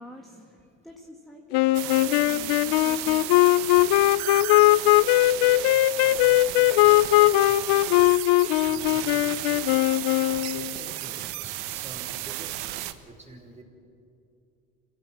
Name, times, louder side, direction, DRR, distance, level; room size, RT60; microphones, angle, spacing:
voice 1, 0.0-3.2, left 1 dB, ahead, 1 dB, 1.8 m, -47 dB
sound 1, 1.5-10.7, left 18 dB, 75° left, 0.6 m, -20 dB
sound 2, 1.7-12.9, right 15 dB, 80° right, 1.1 m, -34 dB
voice 2, 4.1-4.8 5.7-7.2 7.5-7.6 8.6-9.6 10.3-13.6, right 1 dB, 15° right, 1 dB, 4.5 m, -48 dB
27.0 x 17.0 x 7.5 m, 2.6 s
supercardioid pair, 100°, 42 cm